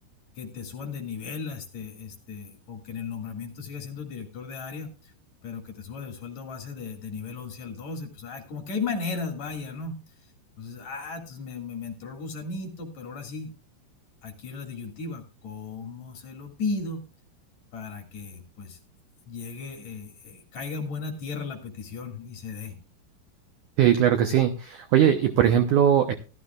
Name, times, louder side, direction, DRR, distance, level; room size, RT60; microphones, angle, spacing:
voice 1, 0.4-5.1 5.4-9.9 10.2-10.3 10.6-13.5 14.2-17.0 17.7-18.8 19.3-22.8, left 4 dB, 50° left, 3 dB, 3.1 m, -36 dB
voice 2, 23.8-26.1, right 10 dB, 85° right, 7 dB, 1.7 m, -20 dB
15.0 x 14.0 x 2.4 m, 0.34 s
omnidirectional pair, 4.9 m